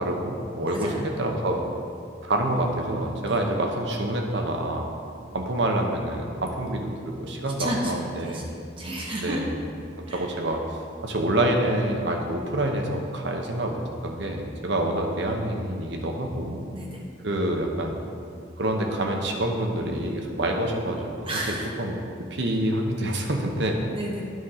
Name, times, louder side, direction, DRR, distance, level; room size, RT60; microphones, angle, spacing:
voice 1, 0.0-1.6 2.2-4.9 5.3-8.5 9.2-9.5 10.0-10.6 11.0-13.8 14.0-16.6 17.2-18.0 18.6-21.1 21.5-22.0 22.3-23.8, right 1 dB, 65° right, 2 dB, 0.9 m, -27 dB
voice 2, 0.7-1.0 3.2-3.4 7.6-9.4 10.1-10.3 16.7-17.0 21.3-21.7 23.9-24.2, right 1 dB, 25° right, -2 dB, 0.7 m, -32 dB
9.3 x 3.7 x 5.6 m, 2.3 s
head